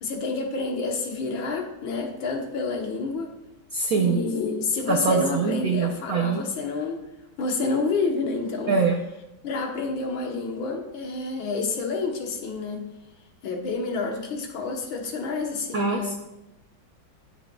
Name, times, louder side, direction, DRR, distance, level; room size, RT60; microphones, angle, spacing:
voice 1, 0.0-3.3 4.0-7.0 7.4-8.8 9.4-12.8 13.4-16.1, left 4 dB, 75° left, 2 dB, 1.8 m, -28 dB
voice 2, 3.7-4.2 4.9-6.4 8.7-9.0 15.7-16.1, right 5 dB, 70° right, 2 dB, 0.8 m, -23 dB
13.0 x 6.3 x 2.3 m, 0.94 s
omnidirectional pair, 2.2 m